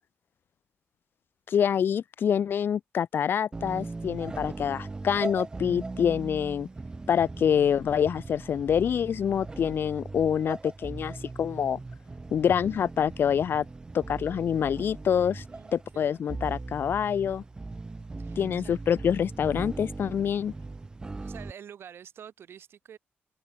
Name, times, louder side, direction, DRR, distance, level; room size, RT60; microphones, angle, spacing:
voice 1, 1.5-6.7 7.1-11.8 12.3-13.6 13.9-15.4 15.7-17.4 18.4-20.5, left 8 dB, 55° left, 1.0 m, -26 dB
sound 1, 3.5-21.5, right 3 dB, 20° right, 1.8 m, -39 dB
voice 2, 15.5-16.4 18.2-18.8 21.2-23.0, right 8 dB, 65° right, 6.3 m, -48 dB
open air
wide cardioid pair, 170°, 4 cm